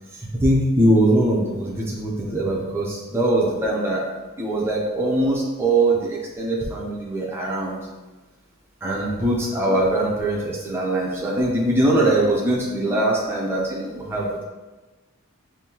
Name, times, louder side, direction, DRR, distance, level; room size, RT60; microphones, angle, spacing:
voice 1, 0.1-4.0 4.4-7.8 8.8-14.4, right 1 dB, 10° right, -4 dB, 0.6 m, -22 dB
5.3 x 2.8 x 2.9 m, 1.2 s
head